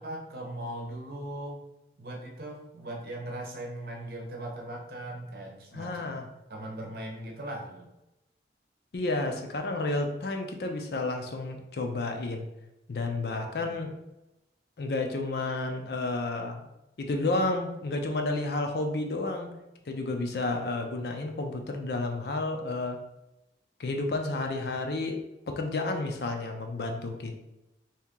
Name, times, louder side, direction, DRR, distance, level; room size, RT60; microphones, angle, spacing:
voice 1, 0.0-1.6 2.0-6.1 6.5-7.9 13.3-13.8, right 1 dB, 55° right, 0 dB, 0.8 m, -39 dB
voice 2, 5.7-6.3 8.9-12.5 12.9-13.9 14.8-16.7 17.0-19.5 19.9-23.0 23.8-25.2 25.5-27.4, left 2 dB, 65° left, 4 dB, 0.5 m, -31 dB
2.8 x 2.8 x 3.6 m, 0.94 s
head